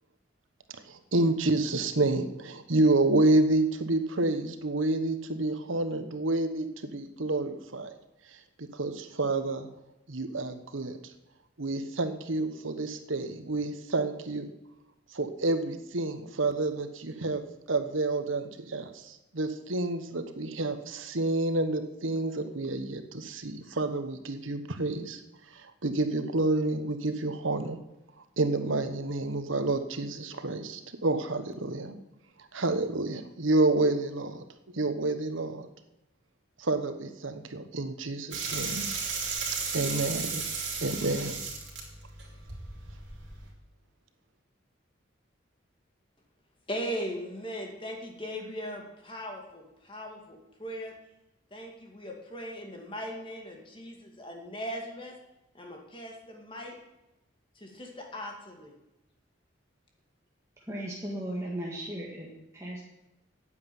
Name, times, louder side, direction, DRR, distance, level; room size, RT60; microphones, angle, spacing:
voice 1, 0.9-7.9 8.7-9.7 10.1-11.0 11.6-14.4 15.1-17.4 17.7-25.2 25.5-27.8 28.4-31.9 32.5-34.4 34.7-35.7 36.6-38.8 39.7-40.4 40.8-41.3, right 2 dB, 80° right, 9 dB, 1.2 m, -29 dB
sound 1, 38.3-43.5, right 5 dB, 60° right, 3.7 m, -35 dB
voice 2, 46.7-50.9 51.5-55.1 55.5-56.8 57.6-58.8, equal, 25° left, 1 dB, 2.3 m, -39 dB
voice 3, 60.7-62.8, right 1 dB, 15° right, -4 dB, 1.8 m, -36 dB
9.6 x 8.1 x 9.3 m, 0.92 s
head